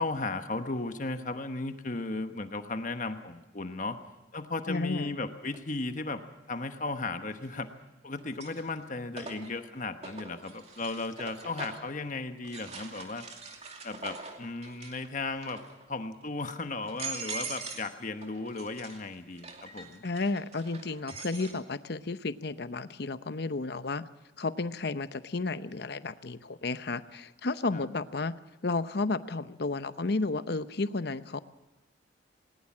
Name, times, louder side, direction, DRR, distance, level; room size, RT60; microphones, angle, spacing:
voice 1, 0.0-4.0 4.3-6.2 6.5-7.7 8.0-13.2 13.8-15.6 15.9-20.0 27.7-27.8, left 3 dB, 40° left, 8 dB, 1.1 m, -35 dB
voice 2, 4.7-5.1 20.0-24.0 24.4-28.4 28.6-31.4, left 3 dB, 55° left, 13 dB, 0.8 m, -32 dB
sound 1, 5.5-5.6 7.3-7.8 8.2-11.9 12.4-15.1 15.4-15.9 16.4-16.5 16.8-17.9 18.2-21.6, right 4 dB, 35° right, 2.4 m, -43 dB
19.5 x 19.5 x 7.3 m, 1.0 s
head